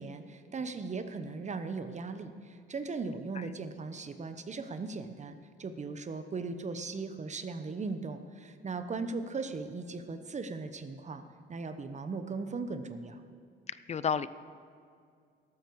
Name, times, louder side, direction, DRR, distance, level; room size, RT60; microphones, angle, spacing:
voice 1, 0.0-5.3 5.6-11.2 11.5-13.2, right 4 dB, 35° right, 9 dB, 1.0 m, -38 dB
voice 2, 13.7-14.3, left 6 dB, 35° left, 16 dB, 0.5 m, -32 dB
13.5 x 12.0 x 4.8 m, 2.2 s
cardioid pair, 90°, 20 cm